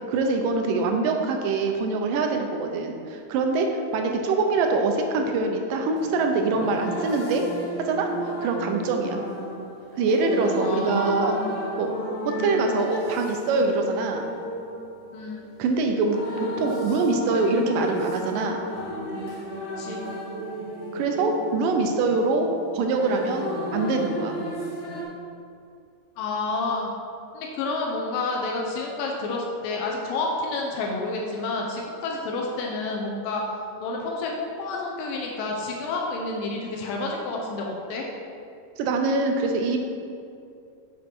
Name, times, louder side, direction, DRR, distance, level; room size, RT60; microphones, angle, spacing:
voice 1, 0.1-7.5 7.8-9.2 10.0-11.3 11.8-12.0 12.3-14.3 15.6-16.2 16.6-18.6 20.9-24.4 38.8-39.8, right 3 dB, 85° right, 3 dB, 2.2 m, -24 dB
sound 1, 5.9-25.0, equal, 55° left, 1.8 m, -33 dB
voice 2, 10.6-11.5 15.1-15.5 19.8-20.0 26.2-26.9 27.3-33.4 33.8-38.1, left 3 dB, 90° left, 0 dB, 2.4 m, -29 dB
6.8 x 5.2 x 4.5 m, 2.5 s
omnidirectional pair, 3.9 m